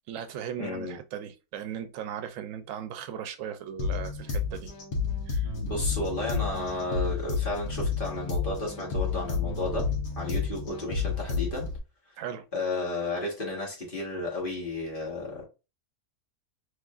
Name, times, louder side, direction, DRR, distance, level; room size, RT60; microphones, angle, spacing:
voice 1, 0.1-4.7 5.3-5.5 12.2-12.5, right 9 dB, 75° right, 0.9 m, -37 dB
voice 2, 0.6-1.0 5.6-9.9 10.1-11.7 12.5-15.4, left 2 dB, 40° left, 1.5 m, -33 dB
sound 1, 3.8-11.8, left 5 dB, 80° left, 1.2 m, -31 dB
3.6 x 3.0 x 2.4 m
omnidirectional pair, 1.4 m